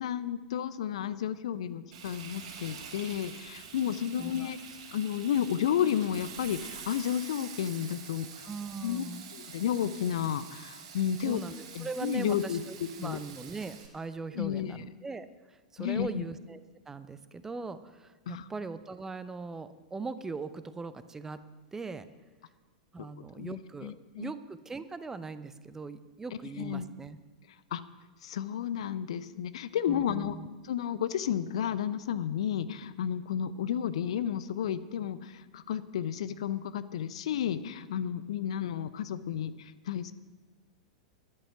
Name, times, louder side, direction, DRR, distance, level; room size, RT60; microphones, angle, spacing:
voice 1, 0.0-4.6 4.9-8.5 8.8-9.0 9.3-11.4 11.7-12.6 13.0-13.2 14.3-14.8 15.8-16.2 18.3-18.4 23.2-24.3 26.6-26.8 27.7-27.8 28.2-30.4 30.6-40.1, left 9 dB, 55° left, 14 dB, 0.7 m, -32 dB
Frying (food), 1.9-13.9, right 6 dB, 50° right, 3.6 m, -46 dB
voice 2, 4.2-4.5 8.4-9.3 11.2-21.4 21.7-22.1 22.9-27.2 29.9-30.5, right 4 dB, 10° right, 13 dB, 0.6 m, -40 dB
12.5 x 11.0 x 5.9 m, 1.3 s
figure-of-eight pair, 95°, 4 cm